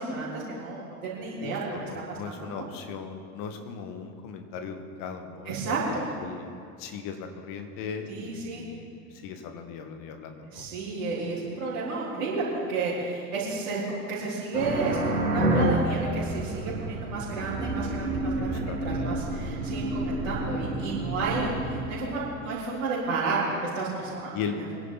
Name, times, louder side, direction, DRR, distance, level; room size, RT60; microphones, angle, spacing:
voice 1, 0.0-2.6 5.5-6.1 8.1-8.6 10.5-24.3, right 3 dB, 70° right, -10 dB, 3.8 m, -31 dB
voice 2, 1.4-6.5 6.8-10.7 18.5-19.4 24.3-24.6, left 6 dB, 45° left, 6 dB, 1.8 m, -38 dB
sound 1, 14.5-21.8, right 1 dB, 90° right, 4.0 m, -29 dB
23.5 x 10.5 x 4.1 m, 2.5 s
figure-of-eight pair, 70°, 43 cm